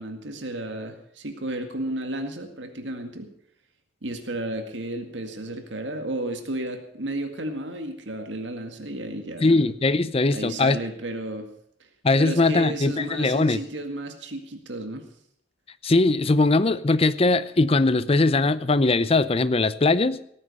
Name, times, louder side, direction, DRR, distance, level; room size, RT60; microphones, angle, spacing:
voice 1, 0.0-3.3 4.0-9.6 10.3-11.5 12.2-15.0, right 1 dB, 75° right, 6 dB, 2.0 m, -33 dB
voice 2, 9.4-10.8 12.0-13.6 15.8-20.2, left 3 dB, 30° left, 14 dB, 0.6 m, -20 dB
18.0 x 9.8 x 5.4 m, 0.70 s
head